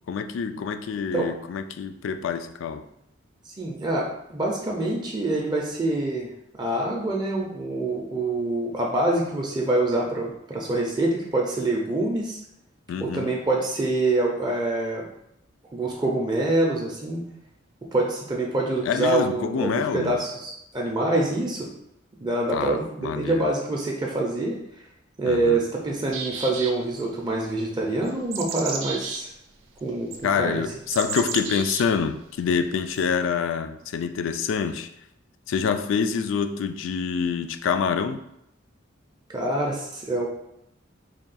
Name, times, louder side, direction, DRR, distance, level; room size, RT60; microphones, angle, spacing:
voice 1, 0.1-2.8 12.9-13.3 18.8-20.2 22.5-23.4 25.2-25.6 30.2-34.9 35.5-38.2, left 6 dB, 75° left, 0.3 m, -26 dB
voice 2, 3.5-6.3 6.6-12.4 13.0-15.0 15.7-17.2 17.9-21.7 22.2-24.6 25.2-29.3 29.8-30.1 30.4-30.6 39.3-40.3, right 2 dB, 20° right, 0.4 m, -25 dB
sound 1, 26.1-27.0 28.0-29.2 30.1-30.2 30.9-31.8 32.9-33.0, right 5 dB, 80° right, 0.5 m, -32 dB
3.6 x 2.3 x 4.0 m
head